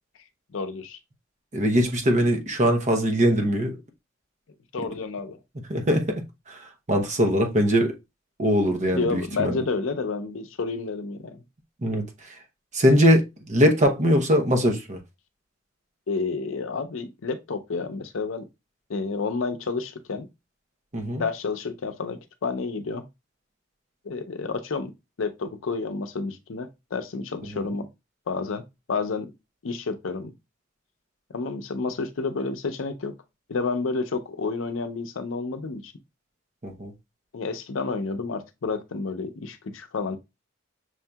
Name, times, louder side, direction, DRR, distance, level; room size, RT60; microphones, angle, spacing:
voice 1, 0.5-1.0 4.7-5.4 8.9-11.4 16.1-18.5 18.9-20.3 21.1-23.0 24.0-24.9 25.2-27.9 28.3-28.6 28.9-29.3 29.6-30.3 31.3-33.1 33.5-35.9 37.3-40.2, left 4 dB, 80° left, 0.6 m, -30 dB
voice 2, 1.5-3.8 5.7-6.6 6.9-7.9 8.4-9.6 11.8-12.0 12.7-15.0 20.9-21.2 36.6-36.9, equal, 40° right, 0.8 m, -21 dB
6.3 x 2.8 x 2.3 m
head